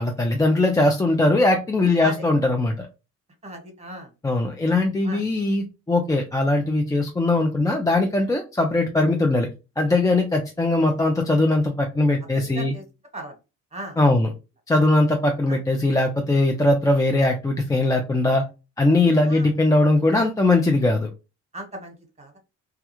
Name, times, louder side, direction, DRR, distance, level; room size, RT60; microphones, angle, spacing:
voice 1, 0.0-2.9 4.2-9.5 9.8-12.7 14.0-14.3 14.7-18.4 18.8-21.1, left 2 dB, 10° left, 2 dB, 0.4 m, -20 dB
voice 2, 3.4-4.1 5.0-5.2 12.3-12.8 13.1-13.3 13.7-14.0 15.5-15.6 19.2-19.5 21.5-22.4, right 1 dB, 20° right, 4 dB, 1.2 m, -38 dB
2.4 x 2.3 x 2.9 m, 0.28 s
cardioid pair, 90°, 30 cm